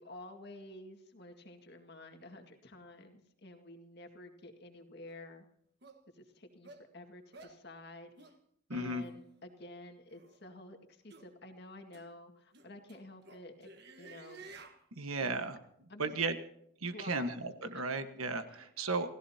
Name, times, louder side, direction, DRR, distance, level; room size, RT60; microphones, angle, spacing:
voice 1, 0.0-5.4 6.1-8.3 8.7-13.7 14.0-14.4 15.2-15.5 15.9-16.1 16.9-17.3 17.6-17.8 18.5-18.6, left 1 dB, 50° left, 5 dB, 2.0 m, -51 dB
sound 1, 5.1-5.2 5.8-6.0 6.6-6.8 7.3-7.6 8.2-8.4 9.0-9.1 10.1-10.4 11.1-11.3 11.9-12.0 12.5-14.8, right 3 dB, 50° right, 1.5 m, -53 dB
voice 2, 8.7-9.0 14.9-15.6 16.0-16.4 16.8-19.1, right 3 dB, 85° right, 8 dB, 1.4 m, -35 dB
28.0 x 16.5 x 2.8 m, 0.71 s
head